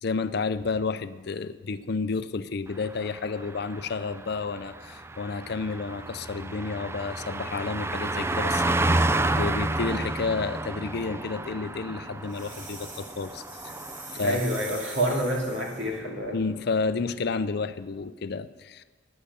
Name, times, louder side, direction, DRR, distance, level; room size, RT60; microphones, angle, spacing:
voice 1, 0.0-13.8 14.2-14.4 16.3-18.8, left 4 dB, 55° left, 12 dB, 0.5 m, -31 dB
Car passing by, 2.8-14.7 15.0-15.2, right 2 dB, 15° right, 0.3 m, -31 dB
sound 1, 12.3-16.0, right 2 dB, 45° right, 2.7 m, -43 dB
voice 2, 14.1-16.4, right 1 dB, 70° right, -1 dB, 2.5 m, -28 dB
11.0 x 9.7 x 6.7 m, 1.3 s
head